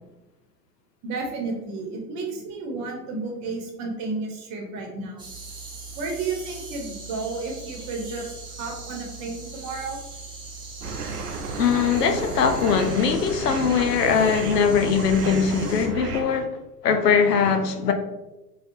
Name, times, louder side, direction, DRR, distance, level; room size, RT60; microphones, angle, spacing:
voice 1, 1.0-5.3 6.0-8.3 8.6-10.0, right 3 dB, 35° right, 1.0 m, -32 dB
sound 1, 5.2-15.9, right 3 dB, 10° right, 0.6 m, -40 dB
sound 2, 10.8-16.2, right 3 dB, 70° right, 0.6 m, -33 dB
voice 2, 11.6-16.5 16.8-17.9, left 6 dB, 85° left, 0.6 m, -21 dB
4.2 x 2.3 x 2.7 m
figure-of-eight pair, 95°, 47 cm